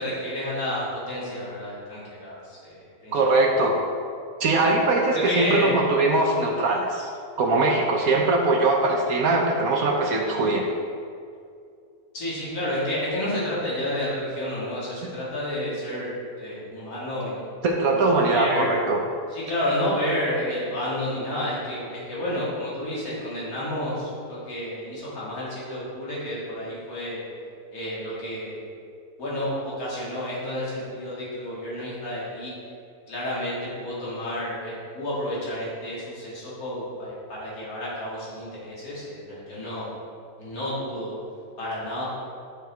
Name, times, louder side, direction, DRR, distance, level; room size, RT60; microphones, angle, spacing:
voice 1, 0.0-3.4 4.6-4.8 5.1-5.8 12.1-17.5 17.9-18.7 19.3-27.2 27.7-28.6 29.2-32.5 33.1-39.9 40.4-41.1 41.6-42.0, left 1 dB, 65° left, -8 dB, 2.5 m, -30 dB
voice 2, 3.1-3.8 4.4-7.1 7.4-10.7 15.0-15.1 17.6-19.0, right 2 dB, 70° right, 0 dB, 1.2 m, -21 dB
11.5 x 4.6 x 3.4 m, 2.4 s
omnidirectional pair, 1.6 m